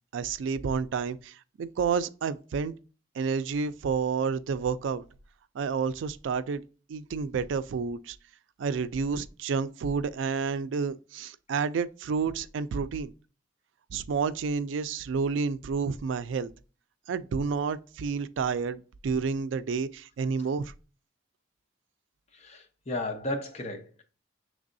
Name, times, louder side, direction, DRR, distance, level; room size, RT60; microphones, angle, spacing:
voice 1, 0.1-2.7 3.2-5.0 5.5-6.6 6.9-8.2 8.6-13.1 13.9-16.5 17.1-20.7, right 5 dB, 85° right, 0.3 m, -30 dB
voice 2, 22.3-24.0, left 1 dB, 35° left, 0.7 m, -34 dB
6.1 x 3.3 x 2.6 m
head